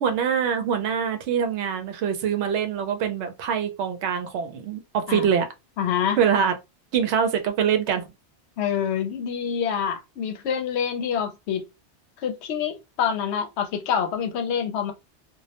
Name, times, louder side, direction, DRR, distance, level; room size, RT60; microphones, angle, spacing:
voice 1, 0.0-5.5 6.2-6.5 6.9-8.1, right 7 dB, 80° right, 0.9 m, -24 dB
voice 2, 5.8-6.2 8.6-11.7 12.2-14.9, left 8 dB, 75° left, 0.8 m, -26 dB
2.3 x 2.0 x 2.8 m
omnidirectional pair, 1.2 m